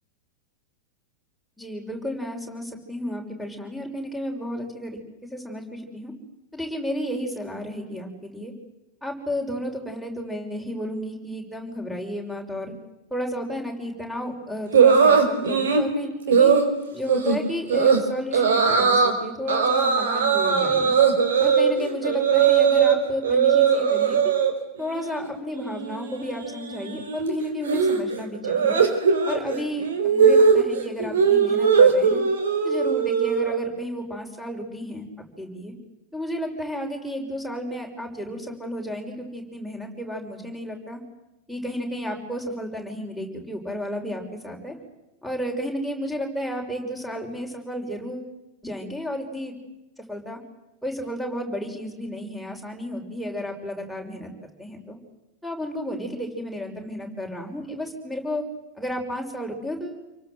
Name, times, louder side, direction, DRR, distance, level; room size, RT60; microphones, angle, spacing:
voice 1, 1.6-6.1 6.5-8.5 9.0-12.7 13.1-16.5 16.9-20.9 21.4-24.3 24.8-28.8 29.3-32.2 32.6-35.1 35.4-35.7 36.1-41.0 41.5-44.7 45.2-48.3 48.6-49.5 50.0-50.4 50.8-54.3 54.6-55.0 55.4-58.4 58.8-60.0, equal, ahead, 4 dB, 6.1 m, -32 dB
sound 1, 14.7-15.9 16.3-16.7 17.1-17.4 17.7-18.0 18.3-19.1 19.5-23.0 23.2-24.5 24.8-25.3 25.5-33.7, right 6 dB, 65° right, 4.6 m, -20 dB
28.5 x 24.0 x 8.0 m, 0.97 s
figure-of-eight pair, 90°, 0 cm